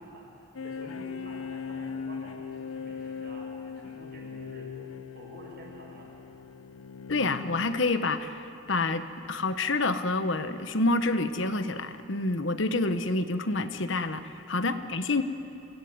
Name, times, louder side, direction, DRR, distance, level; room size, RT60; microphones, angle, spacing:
voice 1, 0.0-6.1 14.8-14.9, right 1 dB, 50° right, -1 dB, 7.3 m, -49 dB
sound 1, 0.6-8.2, left 6 dB, 85° left, 0.8 m, -39 dB
voice 2, 7.1-15.2, left 2 dB, 65° left, 10 dB, 1.1 m, -28 dB
28.5 x 18.0 x 9.6 m, 2.9 s
head